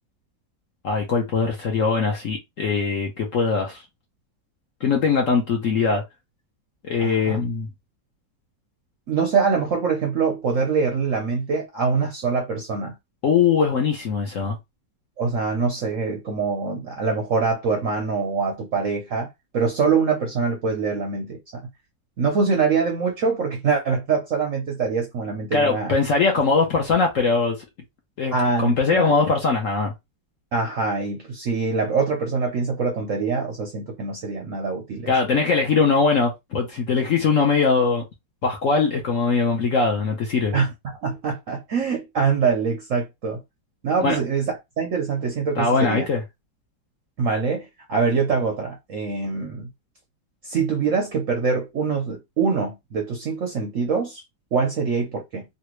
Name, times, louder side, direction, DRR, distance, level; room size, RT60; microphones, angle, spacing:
voice 1, 0.8-3.8 4.8-6.0 6.8-7.7 13.2-14.6 25.5-27.6 28.2-28.3 28.6-29.9 35.1-38.0 38.4-40.6 44.0-44.2 45.6-46.2, left 4 dB, 55° left, 1.0 m, -21 dB
voice 2, 7.0-7.4 9.1-12.9 15.2-21.7 22.2-26.0 28.3-29.1 30.5-35.5 40.5-40.7 41.0-43.4 43.8-46.1 47.2-49.7 50.4-54.2 54.5-55.4, right 5 dB, 65° right, 0.8 m, -24 dB
3.3 x 2.5 x 3.0 m
omnidirectional pair, 2.0 m